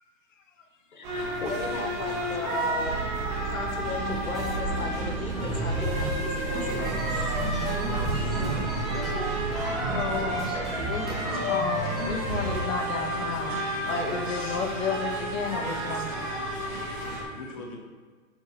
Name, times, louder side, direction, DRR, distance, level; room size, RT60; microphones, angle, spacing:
voice 1, 0.9-3.0 3.4-7.1, left 3 dB, 90° left, 1 dB, 2.0 m, -36 dB
sound 1, 1.0-17.2, right 1 dB, 35° right, 2.1 m, -32 dB
sound 2, 2.8-10.3, right 7 dB, 90° right, 0.9 m, -35 dB
sound 3, 4.0-4.7 5.3-12.6, equal, ahead, 1.2 m, -32 dB
voice 2, 7.9-9.3 17.3-17.8, left 3 dB, 25° left, 0 dB, 0.7 m, -40 dB
voice 3, 9.9-17.6, left 4 dB, 65° left, 2 dB, 1.5 m, -33 dB
9.3 x 4.5 x 3.2 m, 1.5 s
hypercardioid pair, 150°, 41 cm